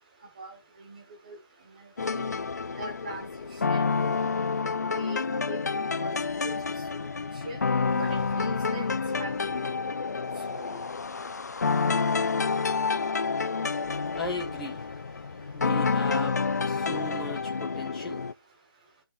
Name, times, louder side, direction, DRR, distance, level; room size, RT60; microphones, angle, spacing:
voice 1, 0.4-1.4 1.8-1.9 2.1-2.3 2.8-3.3 3.6-4.1 4.9-6.6 6.9-7.6 7.9-9.9 10.5-10.8, right 3 dB, 20° right, 1.5 m, -42 dB
sound 1, 2.0-18.3, left 4 dB, 45° left, 0.4 m, -29 dB
voice 2, 14.2-14.8 15.5-16.4 16.6-18.2, left 2 dB, ahead, 0.6 m, -36 dB
16.0 x 5.5 x 2.5 m
hypercardioid pair, 175°, 12 cm